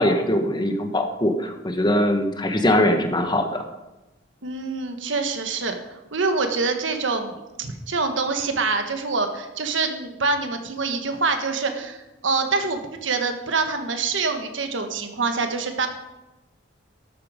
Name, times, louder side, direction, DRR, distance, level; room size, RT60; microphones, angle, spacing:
voice 1, 0.0-3.6, left 1 dB, 25° left, 6 dB, 1.2 m, -21 dB
voice 2, 4.4-15.9, right 4 dB, 80° right, 6 dB, 1.5 m, -25 dB
12.5 x 9.1 x 5.1 m, 1.0 s
head